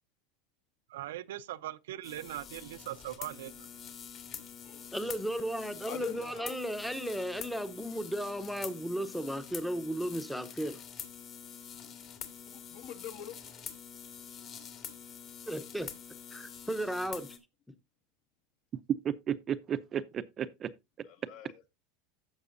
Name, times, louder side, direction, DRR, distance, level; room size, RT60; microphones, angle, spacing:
voice 1, 0.9-3.7, right 14 dB, 90° right, 0.6 m, -40 dB
sound 1, 2.0-17.4, left 8 dB, 35° left, 1.9 m, -46 dB
voice 2, 4.9-10.8 15.5-15.9 16.3-17.4, equal, ahead, 0.8 m, -35 dB
voice 3, 5.9-6.6 12.4-13.4 21.0-21.6, left 9 dB, 55° left, 1.6 m, -44 dB
voice 4, 19.0-20.7, right 9 dB, 25° right, 0.6 m, -34 dB
15.5 x 6.1 x 2.6 m
supercardioid pair, 145°, 0 cm